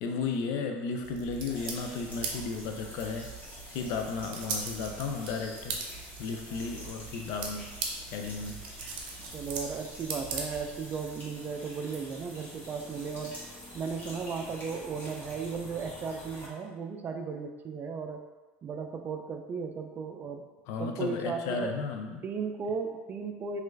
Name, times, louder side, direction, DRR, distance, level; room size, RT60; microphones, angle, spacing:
voice 1, 0.0-3.3 3.7-5.8 6.2-7.7 8.1-8.6 20.7-22.2, left 4 dB, 65° left, 4 dB, 0.4 m, -34 dB
sound 1, 1.0-10.9, right 4 dB, 80° right, 0.6 m, -40 dB
sound 2, 1.5-16.5, left 1 dB, 30° left, 1.3 m, -47 dB
voice 2, 9.3-13.4 13.7-18.2 18.6-20.5 20.8-21.7 22.2-23.6, right 5 dB, 35° right, 4 dB, 0.4 m, -35 dB
3.0 x 2.4 x 3.3 m, 1.2 s
supercardioid pair, 105°, 5 cm